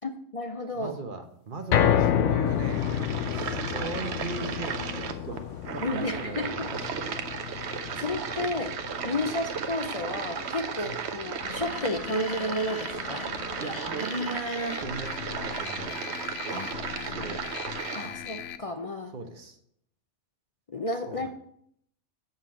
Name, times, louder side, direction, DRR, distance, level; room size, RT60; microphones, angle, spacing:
voice 1, 0.0-1.0 5.8-6.7 7.5-7.7 8.0-8.8 9.0-13.3 16.5-17.4 17.9-19.2 20.7-21.3, left 1 dB, 40° left, 6 dB, 0.5 m, -32 dB
voice 2, 0.7-2.9 3.3-6.7 6.9-7.1 10.8-11.0 13.6-16.1 16.4-17.5 18.0-18.2 19.1-19.6 21.1-21.3, right 3 dB, 45° right, 7 dB, 1.1 m, -38 dB
sound 1, 1.7-14.0 14.4-14.5 14.9-15.0, left 10 dB, 90° left, 0.9 m, -31 dB
sound 2, 2.5-18.1, right 7 dB, 65° right, 1.0 m, -35 dB
sound 3, 11.4-18.6, left 8 dB, 65° left, 0.8 m, -39 dB
7.3 x 5.6 x 6.3 m, 0.68 s
omnidirectional pair, 1.2 m